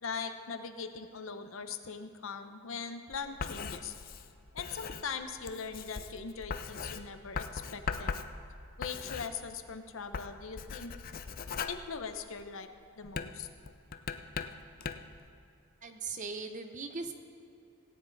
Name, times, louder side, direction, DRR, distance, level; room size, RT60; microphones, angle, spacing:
voice 1, 0.0-3.9 4.5-8.2 8.8-10.9 11.7-12.7 13.0-13.5, left 5 dB, 75° left, 8 dB, 0.8 m, -41 dB
Writing, 3.1-9.8 10.0-12.6 13.1-15.2, left 5 dB, 45° left, 0.5 m, -40 dB
voice 2, 15.8-17.1, right 4 dB, 35° right, 6 dB, 0.8 m, -39 dB
17.5 x 9.4 x 4.1 m, 2.6 s
head